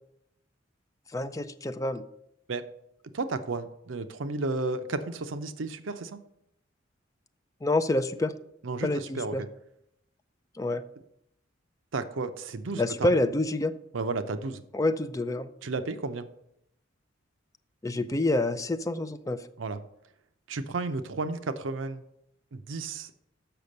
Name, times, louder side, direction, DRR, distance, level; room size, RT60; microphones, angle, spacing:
voice 1, 1.1-2.0 7.6-8.3 8.8-9.4 10.6-10.8 12.7-13.7 14.7-15.5 17.8-19.4, left 2 dB, 15° left, 10 dB, 0.4 m, -27 dB
voice 2, 3.1-6.2 8.6-9.5 11.9-13.1 13.9-14.6 15.6-16.3 19.6-19.8 20.5-22.0 22.5-23.1, right 3 dB, 75° right, 11 dB, 0.6 m, -33 dB
6.8 x 5.9 x 6.5 m, 0.77 s
head